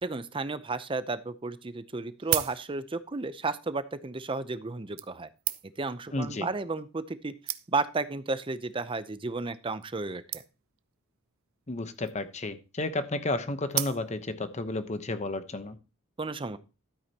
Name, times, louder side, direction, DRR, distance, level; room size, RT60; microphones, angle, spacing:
voice 1, 0.0-5.3 5.8-7.3 7.7-10.4 16.2-16.6, right 3 dB, 25° right, 13 dB, 0.6 m, -33 dB
sound 1, 1.2-1.3 2.0-3.1 4.0-4.2 5.0-5.9 6.8-6.9 7.1-7.2 7.5-8.0 8.7-8.9 9.2-9.3 9.5-9.6 9.8-10.0 10.3-10.8 11.8-12.3 13.7-14.4 14.9-15.0, right 15 dB, 85° right, 0.6 m, -35 dB
voice 2, 6.1-6.5 11.7-15.8, left 2 dB, 35° left, 10 dB, 0.9 m, -32 dB
12.5 x 8.6 x 2.9 m, 0.30 s
head